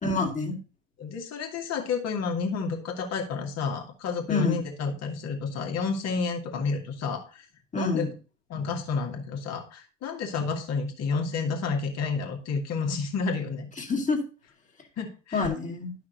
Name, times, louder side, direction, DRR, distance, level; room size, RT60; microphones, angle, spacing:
voice 1, 0.0-0.6 4.3-4.6 7.7-8.1 13.8-14.2 15.3-15.9, left 3 dB, 20° left, 2 dB, 2.0 m, -27 dB
voice 2, 1.0-7.4 7.7-8.1 8.5-13.7 15.0-15.4, left 5 dB, 40° left, 3 dB, 1.9 m, -30 dB
11.5 x 5.9 x 2.7 m, 0.34 s
figure-of-eight pair, 70°, 38 cm